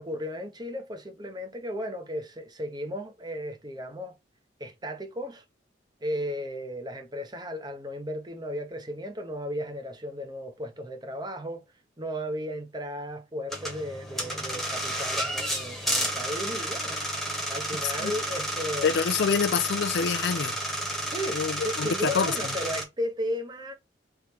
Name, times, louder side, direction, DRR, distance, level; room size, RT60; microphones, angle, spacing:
voice 1, 0.0-4.2 4.6-5.4 6.0-11.6 12.0-17.0 17.5-18.9 21.1-23.7, equal, 25° right, 0.9 m, -35 dB
sound 1, 13.5-22.8, right 1 dB, ahead, 1.2 m, -31 dB
voice 2, 18.8-20.6 21.3-22.3, left 6 dB, 65° left, 0.4 m, -26 dB
3.6 x 3.2 x 4.5 m
head